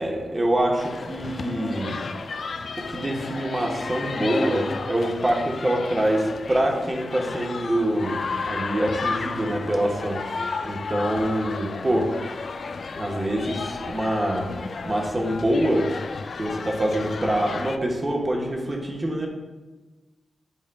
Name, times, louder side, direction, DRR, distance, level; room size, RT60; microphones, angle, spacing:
voice 1, 0.0-2.0 2.9-10.2 10.6-12.1 13.0-14.5 14.8-15.9 16.4-19.3, right 1 dB, 25° right, 0 dB, 1.1 m, -25 dB
sound 1, 0.8-17.8, left 4 dB, 55° left, 0.3 m, -33 dB
10.0 x 4.9 x 2.3 m, 1.2 s
wide cardioid pair, 105°, 0 cm